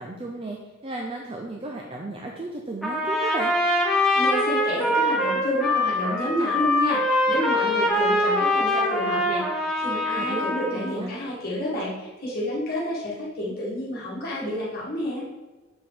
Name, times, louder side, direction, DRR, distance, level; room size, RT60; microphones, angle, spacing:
voice 1, 0.0-3.5 10.2-11.1, right 2 dB, 25° right, 0 dB, 0.5 m, -34 dB
Trumpet, 2.8-10.9, left 1 dB, ahead, 0.9 m, -23 dB
voice 2, 4.1-15.2, equal, 45° left, -7 dB, 1.5 m, -29 dB
7.1 x 4.8 x 3.8 m, 1.2 s
head